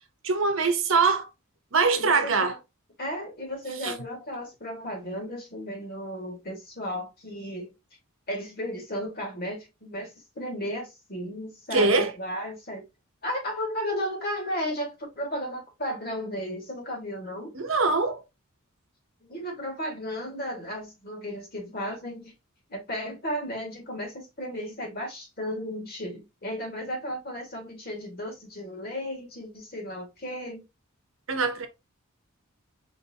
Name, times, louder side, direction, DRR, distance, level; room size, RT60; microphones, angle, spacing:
voice 1, 0.2-1.3 1.7-2.6 3.8-4.0 11.7-12.1 17.5-18.2 31.3-31.7, right 4 dB, 65° right, 0.9 m, -23 dB
voice 2, 1.9-2.5 3.0-7.7 8.3-12.8 13.2-17.5 19.3-22.3 22.7-30.6, equal, 45° left, 2.0 m, -34 dB
4.6 x 3.5 x 2.8 m
head